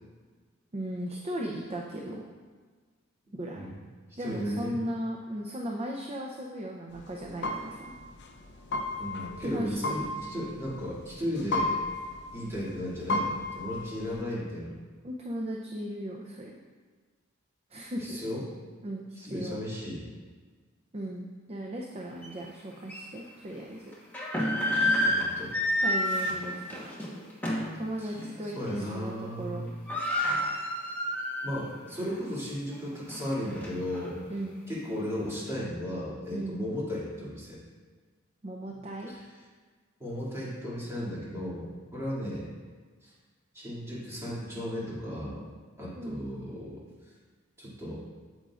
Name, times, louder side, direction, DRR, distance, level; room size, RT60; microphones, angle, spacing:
voice 1, 0.7-2.2 3.3-3.7 4.2-7.9 9.4-10.0 15.0-16.6 17.7-18.2 18.8-19.6 20.9-23.9 25.8-26.9 27.7-29.6 34.3-34.6 36.3-36.6 38.4-39.1 46.0-46.2, equal, 30° right, 0 dB, 0.5 m, -37 dB
voice 2, 4.1-4.8 8.9-11.8 12.3-14.8 18.0-18.4 19.2-20.0 25.0-25.5 28.0-28.3 28.5-29.8 31.4-34.2 34.7-37.6 39.1-39.2 40.0-42.5 43.0-43.1 43.5-45.4 45.8-46.8 47.6-48.0, equal, 15° right, -8 dB, 2.4 m, -35 dB
sound 1, 6.9-14.2, left 2 dB, 55° left, 0.6 m, -34 dB
sound 2, 22.2-22.3 22.9-23.0 23.9-27.8 28.2-28.4 28.7-29.1 29.4-29.5 29.6-31.6 32.0-32.1 32.7-34.1, left 1 dB, 10° left, 1.2 m, -29 dB
9.0 x 7.9 x 2.5 m, 1.5 s
head